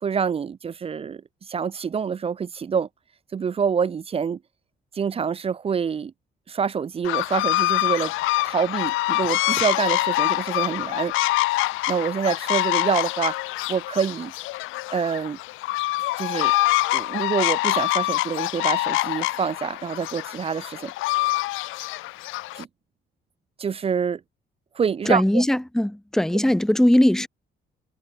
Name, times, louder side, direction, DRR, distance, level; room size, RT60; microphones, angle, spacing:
voice 1, 0.0-1.2 1.5-2.9 3.3-4.4 4.9-6.1 6.5-8.1 8.4-11.1 11.9-13.4 13.7-14.3 14.9-15.4 16.2-16.5 16.9-20.9 22.6-22.7 23.6-24.2 24.8-25.4, right 6 dB, 30° right, 0.4 m, -26 dB
sound 1, 7.0-22.6, left 19 dB, 85° left, 0.4 m, -25 dB
voice 2, 25.0-27.3, left 1 dB, ahead, 0.9 m, -20 dB
cardioid pair, 90°, 20 cm